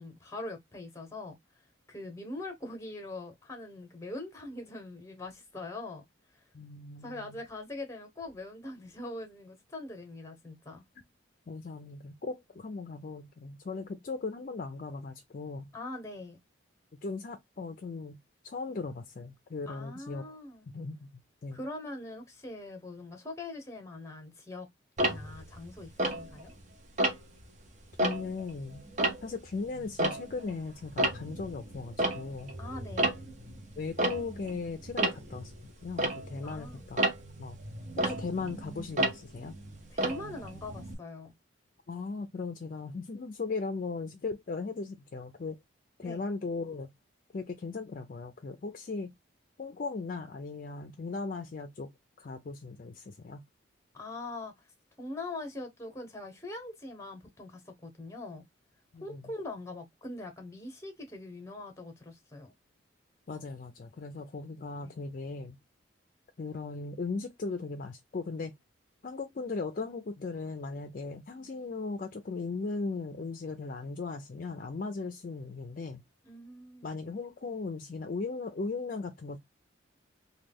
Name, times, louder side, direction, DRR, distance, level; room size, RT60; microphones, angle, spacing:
voice 1, 0.0-1.4 1.9-6.0 7.0-10.8 15.7-16.4 19.7-20.7 21.5-24.7 25.0-26.5 32.6-33.1 36.4-36.9 39.9-41.3 46.0-46.2 53.9-54.5 55.0-58.4 59.0-62.5 64.8-64.9 76.2-77.0, left 2 dB, 15° left, 0.9 m, -42 dB
voice 2, 6.5-7.4 11.5-15.7 17.0-18.2 18.4-20.3 20.7-21.1 21.4-21.6 28.0-28.8 29.2-32.5 33.8-37.1 37.4-37.6 38.0-39.6 41.9-45.6 46.0-46.9 47.3-49.1 49.6-51.9 52.2-53.4 58.9-59.2 63.3-65.6 66.4-68.5 69.0-76.0 76.8-79.4, left 4 dB, 45° left, 0.4 m, -38 dB
Tick-tock, 25.0-26.6 27.0-27.4 27.8-30.6 30.8-40.9, right 1 dB, 40° right, 0.6 m, -32 dB
3.0 x 2.2 x 3.5 m
head